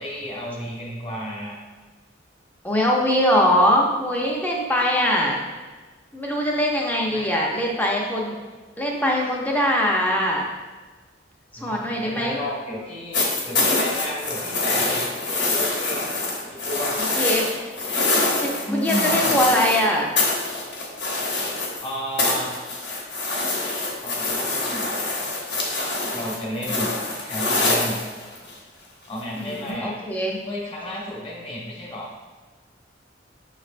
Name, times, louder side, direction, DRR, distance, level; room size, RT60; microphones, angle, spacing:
voice 1, 0.0-1.6 7.0-7.4 11.5-16.0 16.4-17.0 18.7-19.4 21.8-22.6 24.0-25.1 26.1-27.0 27.2-28.0 29.1-30.0 30.4-32.1, equal, 30° left, -4 dB, 1.1 m, -32 dB
voice 2, 2.6-5.4 6.1-8.4 8.8-10.4 11.6-12.4 17.0-17.6 18.4-20.1 26.7-26.8 29.4-30.4, equal, 10° left, -2 dB, 0.5 m, -22 dB
sound 1, 13.1-19.8 20.2-21.9 22.2-28.5 29.7-29.8, left 2 dB, 60° left, 1.0 m, -25 dB
6.5 x 3.2 x 2.5 m, 1.4 s
head